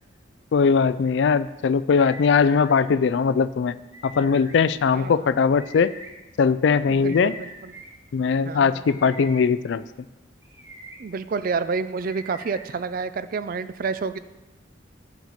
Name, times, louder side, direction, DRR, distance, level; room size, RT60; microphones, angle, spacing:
voice 1, 0.5-3.8 4.0-5.9 6.4-7.3 8.1-9.8, left 5 dB, 70° left, 16 dB, 0.3 m, -20 dB
sound 1, 2.0-2.8 3.9-4.6 5.6-6.1 7.1-7.9 8.8-9.4 10.4-11.0 12.0-12.6, equal, 10° right, 1.5 m, -43 dB
voice 2, 4.9-5.4 6.9-7.7 8.4-8.8 11.0-14.2, right 4 dB, 50° right, 13 dB, 0.4 m, -29 dB
8.9 x 5.9 x 5.7 m, 1.1 s
head